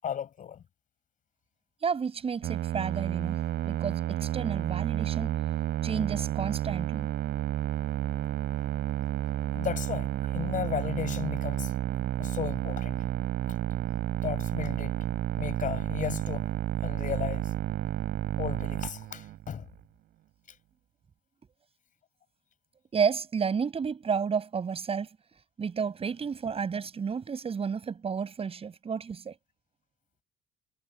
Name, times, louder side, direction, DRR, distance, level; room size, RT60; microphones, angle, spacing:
voice 1, 0.0-0.6 9.5-11.7 12.2-13.0 14.2-15.0 15.4-16.5 16.8-17.5 18.4-19.7, left 9 dB, 50° left, 7.6 m, -35 dB
voice 2, 1.8-3.4 3.7-5.4 5.8-7.1 22.9-25.1 25.6-29.3, right 6 dB, 35° right, 6.3 m, -31 dB
Musical instrument, 2.4-19.6, right 13 dB, 70° right, 6.6 m, -31 dB
cardioid pair, 110°, 17 cm